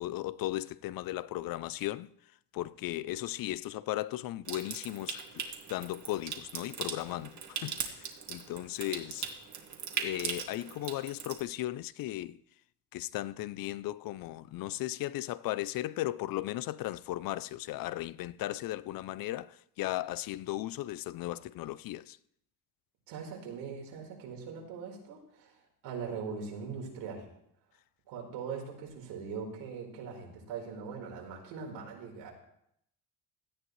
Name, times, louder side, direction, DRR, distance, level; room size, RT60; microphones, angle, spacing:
voice 1, 0.0-2.1 2.5-9.3 10.0-12.4 12.9-22.2, left 15 dB, 55° left, 0.5 m, -36 dB
Water tap faucet / Sink (filling or washing) / Trickle dribble, 4.4-11.4, right 7 dB, 45° right, 2.0 m, -40 dB
voice 2, 23.1-25.5 25.8-27.2 28.1-32.3, right 6 dB, 85° right, 4.5 m, -41 dB
17.5 x 13.0 x 3.2 m
cardioid pair, 125°, 41 cm